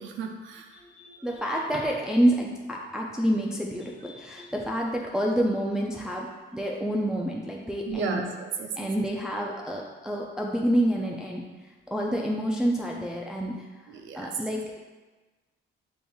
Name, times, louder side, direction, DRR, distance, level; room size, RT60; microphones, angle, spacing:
voice 1, 0.0-0.8 1.1-1.3 7.9-8.9 13.9-14.4, right 5 dB, 75° right, 4 dB, 0.4 m, -34 dB
voice 2, 0.7-8.2 8.8-11.4 11.9-13.5 14.1-14.8, equal, 5° right, -1 dB, 0.3 m, -28 dB
5.2 x 2.9 x 2.3 m, 1.2 s
cardioid pair, 90°, 20 cm